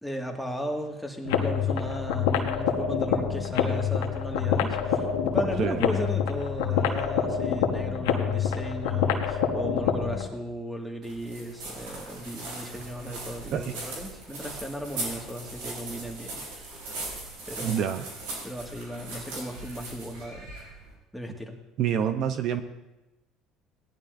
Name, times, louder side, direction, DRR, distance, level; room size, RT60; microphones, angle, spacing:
voice 1, 0.0-16.8 17.5-17.8 18.4-20.5 21.1-21.6, equal, ahead, 1 dB, 1.9 m, -36 dB
sound 1, 1.2-10.3, left 7 dB, 90° left, 1.2 m, -26 dB
sound 2, 11.0-20.9, right 2 dB, 90° right, 4.2 m, -39 dB
voice 2, 17.6-18.0 21.8-22.6, right 9 dB, 60° right, 9 dB, 0.7 m, -27 dB
17.5 x 11.0 x 2.6 m, 1.0 s
supercardioid pair, 90°, 0 cm